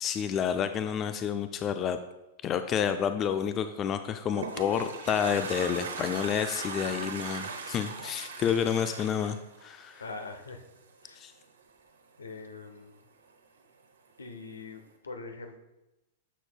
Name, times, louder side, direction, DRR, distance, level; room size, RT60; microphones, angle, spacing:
voice 1, 0.0-2.0 2.4-10.1 11.2-11.3, left 8 dB, 30° left, 9 dB, 0.4 m, -29 dB
Toilet flush, 4.0-10.4, right 4 dB, 75° right, 0.8 m, -38 dB
voice 2, 10.0-10.6 11.0-11.2 12.2-13.0 14.2-15.6, left 3 dB, 80° left, 6 dB, 0.8 m, -42 dB
9.9 x 6.1 x 2.3 m, 0.98 s
figure-of-eight pair, 100°, 0 cm